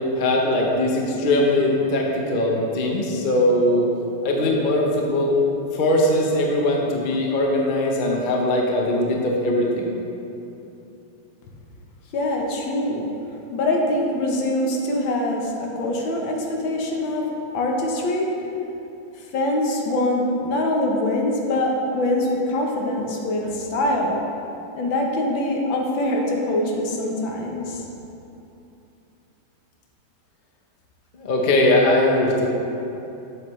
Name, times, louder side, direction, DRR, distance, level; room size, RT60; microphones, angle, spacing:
voice 1, 0.2-3.9 4.2-5.4 5.7-9.9 31.1-32.5, left 1 dB, 55° left, -1 dB, 0.5 m, -20 dB
voice 2, 12.1-13.1 13.5-18.3 19.3-24.2 24.7-27.8, left 1 dB, 70° left, 0 dB, 1.6 m, -24 dB
8.0 x 7.9 x 3.1 m, 2.9 s
omnidirectional pair, 2.2 m